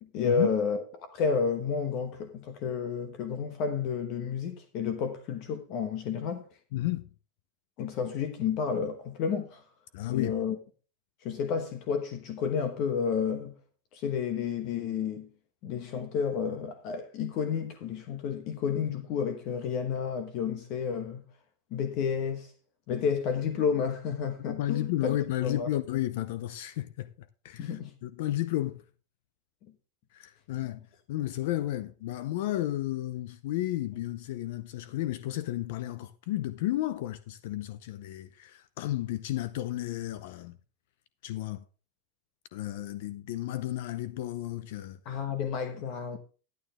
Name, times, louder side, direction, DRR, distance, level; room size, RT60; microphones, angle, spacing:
voice 1, 0.0-6.5 7.8-9.6 10.1-10.6 11.2-13.5 13.9-15.3 15.6-21.2 21.7-22.5 22.9-25.2 25.4-25.7 27.6-27.9 45.0-46.2, left 6 dB, 45° left, 1.0 m, -31 dB
voice 2, 6.7-7.1 9.9-10.4 24.4-28.8 30.1-30.8 31.1-40.6 41.2-41.6 42.5-45.0, left 14 dB, 65° left, 0.6 m, -32 dB
11.0 x 9.2 x 3.6 m
supercardioid pair, 150°, 0 cm